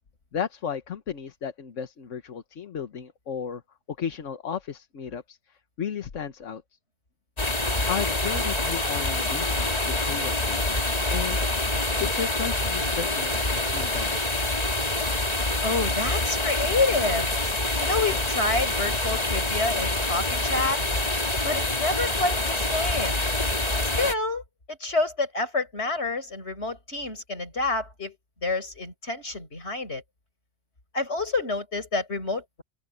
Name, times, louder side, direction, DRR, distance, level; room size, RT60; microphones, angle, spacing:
voice 1, 0.3-3.6 3.9-6.6 7.9-10.7 11.1-11.5 12.0-14.4, left 7 dB, 80° left, 1.6 m, -34 dB
sound 1, 7.4-24.1, left 2 dB, 30° left, 2.5 m, -26 dB
voice 2, 15.6-17.3 17.8-20.8 21.4-23.3 24.0-24.4 24.7-28.2 28.4-30.0 30.9-32.6, left 3 dB, 60° left, 5.8 m, -28 dB
open air
omnidirectional pair, 1.2 m